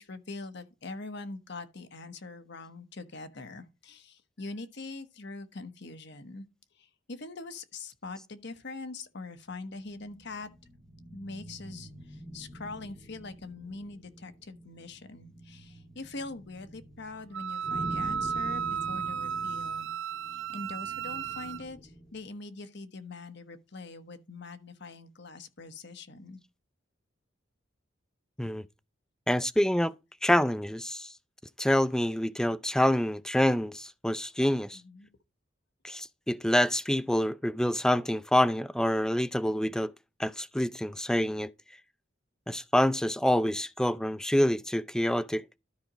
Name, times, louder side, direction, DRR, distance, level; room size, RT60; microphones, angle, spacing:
voice 1, 0.0-6.4 6.7-10.5 11.1-19.9 20.3-26.4 34.7-35.1, left 3 dB, 60° left, 1.1 m, -43 dB
sound 1, 9.6-22.2, equal, 20° left, 2.2 m, -46 dB
Wind instrument woodwind instrument, 17.3-21.6, right 7 dB, 75° right, 0.5 m, -34 dB
voice 2, 29.3-29.9 30.2-31.1 31.6-34.8 35.8-39.9 40.2-41.5 42.5-45.4, left 1 dB, 5° left, 0.4 m, -27 dB
13.0 x 4.9 x 3.0 m
head